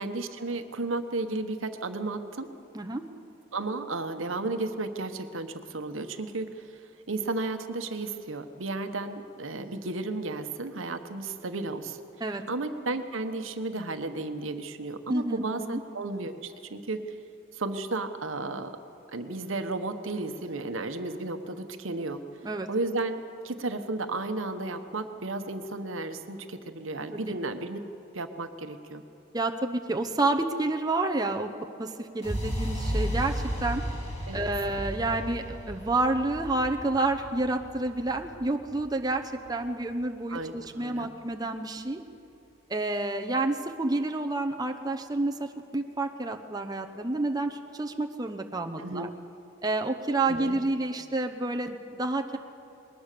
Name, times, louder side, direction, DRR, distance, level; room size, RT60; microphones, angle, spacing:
voice 1, 0.0-2.5 3.5-12.0 12.5-17.1 17.5-18.8 19.1-22.2 22.7-27.8 28.1-29.0 34.3-34.4 40.3-41.1 48.8-49.1 50.3-50.6, right 2 dB, 75° right, 8 dB, 1.2 m, -33 dB
voice 2, 15.1-15.8 22.4-22.7 27.1-27.3 29.3-31.5 31.8-33.8 34.3-42.0 42.7-45.5 45.7-49.1 49.6-52.4, right 2 dB, 20° right, 4 dB, 0.8 m, -29 dB
sound 1, 32.2-40.2, equal, 30° left, 4.8 m, -34 dB
21.0 x 19.5 x 6.8 m, 2.8 s
head